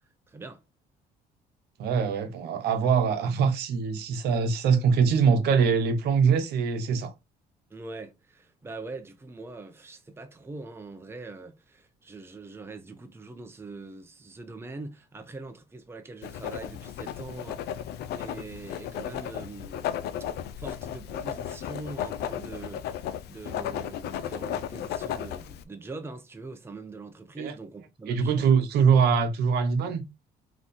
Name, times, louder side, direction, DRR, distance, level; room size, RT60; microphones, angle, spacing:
voice 1, 0.3-0.6 7.7-17.6 18.2-20.0 20.6-28.5, right 3 dB, 15° right, 0.7 m, -42 dB
voice 2, 1.8-7.1 27.4-27.5 28.1-30.0, right 6 dB, 75° right, 0.9 m, -23 dB
Writing, 16.2-25.6, left 10 dB, 75° left, 0.5 m, -35 dB
3.6 x 3.1 x 4.1 m
cardioid pair, 110°, 17 cm